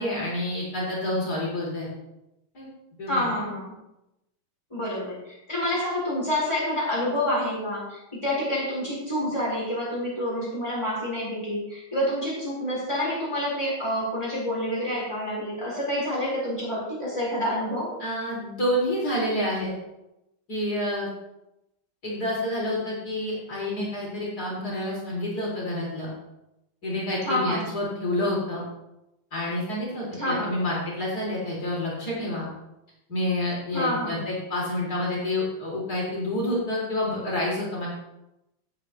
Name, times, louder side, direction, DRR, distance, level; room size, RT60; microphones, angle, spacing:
voice 1, 0.0-1.9 2.5-2.7 3.0-3.3 18.0-19.7 20.5-21.1 22.0-26.1 26.8-28.6 29.3-32.5 33.1-37.9, left 1 dB, 45° left, -5 dB, 3.9 m, -28 dB
voice 2, 3.1-3.7 4.7-17.9 27.2-27.7 30.2-30.6 33.7-34.3, left 1 dB, 15° left, -7 dB, 4.8 m, -28 dB
16.5 x 8.1 x 3.2 m, 0.91 s
omnidirectional pair, 2.4 m